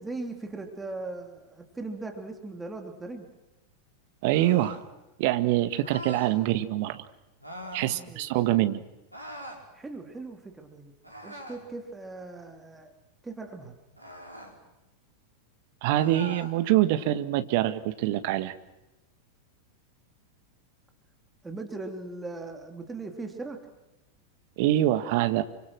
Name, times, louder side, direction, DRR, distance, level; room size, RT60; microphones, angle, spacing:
voice 1, 0.0-3.3 7.8-8.3 9.7-10.9 11.2-12.9 13.2-13.7 21.4-23.7, right 3 dB, 10° right, 4 dB, 3.4 m, -39 dB
voice 2, 4.2-4.8 5.2-7.0 7.7-8.8 15.8-18.5 24.6-25.4, right 14 dB, 50° right, 11 dB, 1.7 m, -25 dB
sound 1, 4.3-4.9 5.8-6.4 7.4-7.9 9.1-9.6 11.0-11.7 14.0-14.5 15.9-16.5, equal, 90° right, 5.1 m, -42 dB
29.0 x 25.5 x 6.4 m, 1.0 s
figure-of-eight pair, 90°, 0 cm